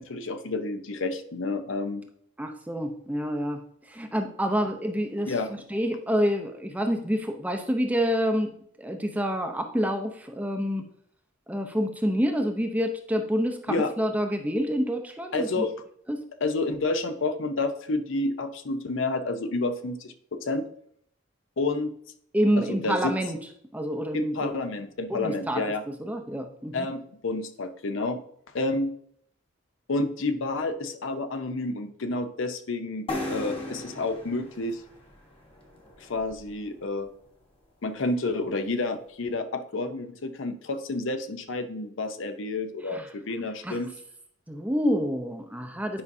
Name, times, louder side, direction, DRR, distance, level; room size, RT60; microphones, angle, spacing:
voice 1, 0.0-2.0 5.3-5.5 13.7-13.9 15.3-15.7 16.4-20.6 21.6-21.9 22.6-23.1 24.1-25.8 26.7-28.2 28.5-28.9 29.9-34.8 36.0-37.1 37.8-43.9, left 2 dB, 70° left, 9 dB, 0.7 m, -29 dB
voice 2, 2.4-3.6 3.9-5.3 5.7-8.5 8.8-10.9 11.5-15.6 16.1-16.2 22.3-23.4 23.7-24.5 25.1-25.7 26.0-26.9 42.9-43.1 43.6-43.8 44.5-46.0, equal, 5° right, 5 dB, 0.6 m, -27 dB
sound 1, 33.1-36.7, left 2 dB, 30° left, 1.2 m, -37 dB
9.7 x 5.4 x 2.6 m, 0.66 s
head